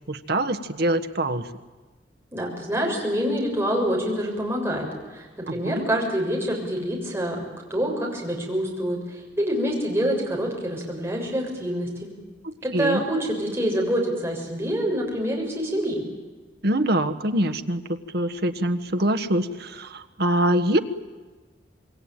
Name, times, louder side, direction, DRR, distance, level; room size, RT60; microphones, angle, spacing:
voice 1, 0.1-1.5 5.5-5.9 12.4-13.0 16.6-20.8, right 1 dB, 60° right, 8 dB, 1.4 m, -24 dB
voice 2, 2.3-7.4 7.7-11.9 12.6-16.0, equal, 15° right, -2 dB, 6.9 m, -26 dB
27.0 x 22.0 x 9.1 m, 1.3 s
head